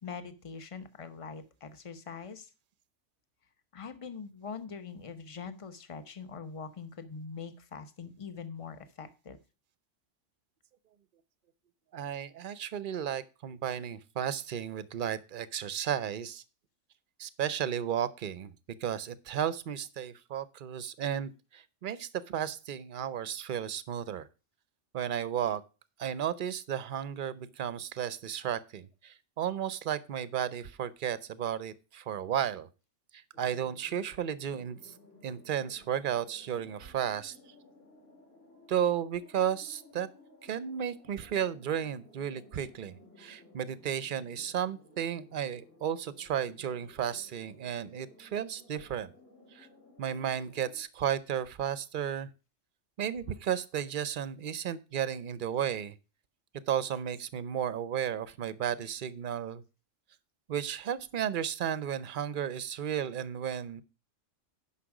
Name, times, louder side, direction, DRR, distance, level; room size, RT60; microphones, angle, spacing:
voice 1, 0.0-2.5 3.7-9.4, left 5 dB, 30° left, 10 dB, 0.8 m, -43 dB
voice 2, 11.9-16.4 17.2-18.5 18.8-24.3 24.9-25.6 26.0-32.7 33.1-34.9 35.2-37.4 38.7-40.1 40.4-49.1 49.5-49.7 50.0-52.3 53.0-55.9 56.7-59.6 60.5-63.8, right 9 dB, 50° right, 16 dB, 0.7 m, -33 dB
sound 1, 33.3-50.8, left 1 dB, 70° left, 3.4 m, -58 dB
10.0 x 5.8 x 4.8 m, 0.32 s
omnidirectional pair, 1.3 m